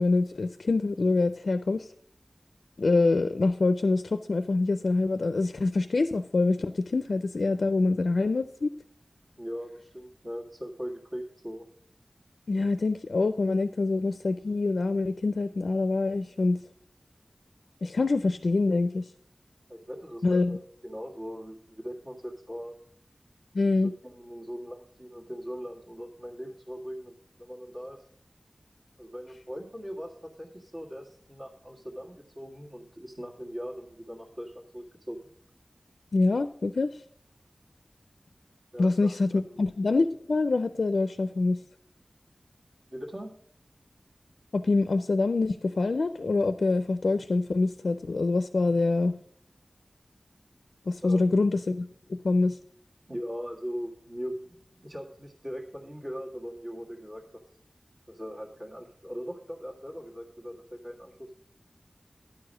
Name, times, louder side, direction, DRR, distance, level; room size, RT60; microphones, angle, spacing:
voice 1, 0.0-1.9 2.8-8.7 12.5-16.6 17.8-19.1 20.2-20.6 23.5-23.9 36.1-37.0 38.8-41.6 44.5-49.2 50.9-52.6, left 3 dB, 85° left, 11 dB, 0.4 m, -25 dB
voice 2, 9.4-11.7 19.7-22.7 24.0-28.0 29.0-35.2 38.7-39.7 42.9-43.3 51.0-51.4 53.1-57.3 58.1-61.4, equal, 45° right, -1 dB, 1.7 m, -40 dB
10.5 x 4.8 x 6.3 m, 0.64 s
wide cardioid pair, 75°, 0 cm